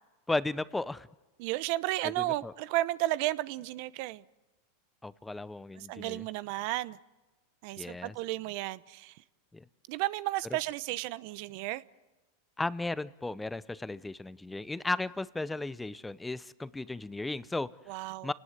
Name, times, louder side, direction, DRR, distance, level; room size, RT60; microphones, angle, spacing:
voice 1, 0.3-1.1 2.2-2.5 5.0-6.2 7.8-8.1 9.5-9.6 12.6-17.7 18.2-18.3, left 2 dB, 10° left, 17 dB, 0.7 m, -35 dB
voice 2, 1.4-4.2 5.7-7.0 7.6-9.1 9.9-11.8 17.9-18.3, right 17 dB, 60° right, 17 dB, 0.8 m, -33 dB
29.5 x 19.0 x 8.1 m, 1.1 s
hypercardioid pair, 110°, 0 cm